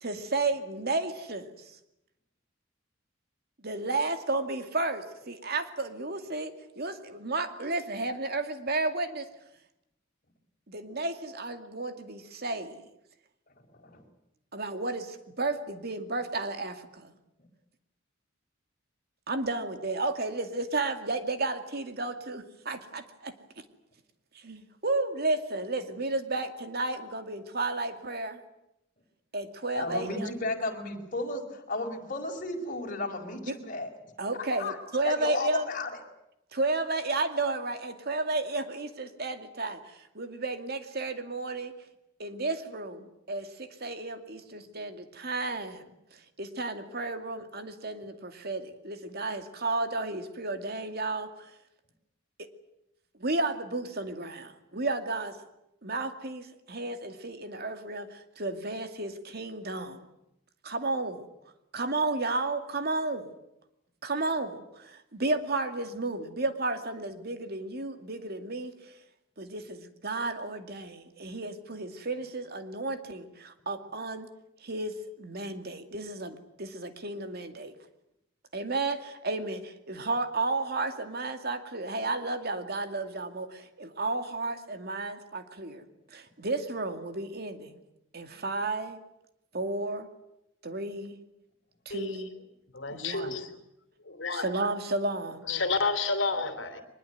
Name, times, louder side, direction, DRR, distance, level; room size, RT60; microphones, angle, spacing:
voice 1, 0.0-1.8 3.6-9.3 10.7-12.9 14.5-17.2 19.3-23.3 24.3-28.4 29.3-30.3 33.5-33.6 34.2-35.7 36.5-41.7 42.2-45.8 46.1-51.5 53.2-55.4 55.8-60.0 60.6-61.2 61.7-63.3 64.0-68.7 69.4-74.3 74.6-77.7 78.5-85.8 86.1-87.8 88.1-89.0 89.5-90.1 90.6-91.2 91.9-92.3 92.9-93.4 94.3-95.4, right 2 dB, 50° right, 7 dB, 2.4 m, -33 dB
voice 2, 29.7-33.9 34.6-34.8 35.0-36.0, left 2 dB, 40° left, 2 dB, 4.6 m, -33 dB
voice 3, 91.9-92.2 92.7-93.5 94.1-94.5 95.5-96.8, left 4 dB, 65° left, 10 dB, 3.0 m, -30 dB
23.0 x 21.0 x 9.3 m, 0.85 s
head